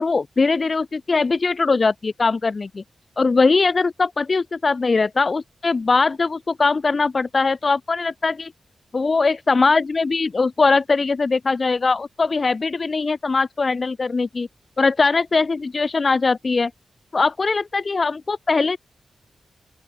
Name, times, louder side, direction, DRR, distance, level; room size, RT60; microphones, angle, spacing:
voice 1, 0.0-2.8 3.2-8.5 8.9-14.5 14.8-16.7 17.1-18.8, left 4 dB, 40° left, 1.7 m, -21 dB
open air
wide cardioid pair, 105°, 0 cm